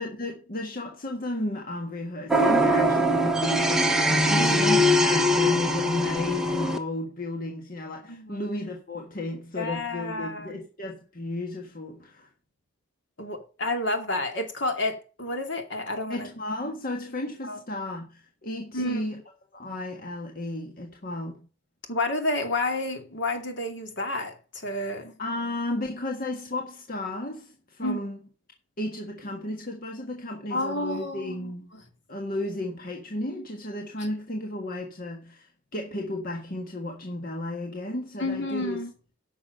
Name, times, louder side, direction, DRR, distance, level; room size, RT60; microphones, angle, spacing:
voice 1, 0.0-12.3 16.1-19.2 19.5-21.5 25.2-28.2 28.8-31.7 32.1-38.8, left 1 dB, 50° left, 1.5 m, -33 dB
sound 1, 2.3-6.8, equal, 5° right, 1.2 m, -22 dB
voice 2, 4.3-4.7 8.1-8.5 9.6-10.6 13.2-16.3 17.4-17.6 18.7-19.0 21.9-25.1 27.8-28.0 30.5-31.8 38.2-38.9, left 2 dB, 65° left, 2.5 m, -30 dB
10.0 x 6.1 x 6.6 m
head